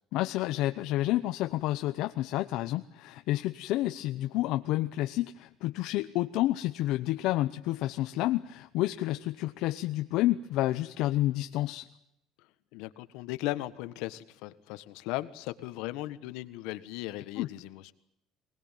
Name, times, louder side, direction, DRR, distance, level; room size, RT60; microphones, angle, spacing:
voice 1, 0.1-11.9 17.4-17.5, left 15 dB, 65° left, 8 dB, 0.9 m, -29 dB
voice 2, 12.7-17.9, left 17 dB, 85° left, 13 dB, 1.5 m, -37 dB
24.0 x 19.5 x 9.1 m, 0.80 s
cardioid pair, 165°, 0 cm